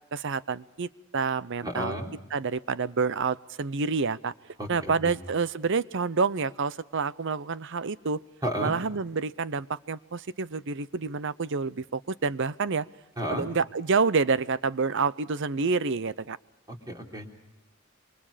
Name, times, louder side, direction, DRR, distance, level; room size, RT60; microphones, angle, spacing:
voice 1, 0.1-1.9 2.3-4.3 4.7-8.2 8.6-12.9 13.3-16.4, right 4 dB, 60° right, 17 dB, 0.7 m, -28 dB
voice 2, 1.6-2.1 4.6-5.1 8.4-8.7 13.2-13.5 16.7-17.3, equal, 20° right, 1 dB, 3.8 m, -32 dB
27.5 x 24.5 x 5.0 m, 0.91 s
head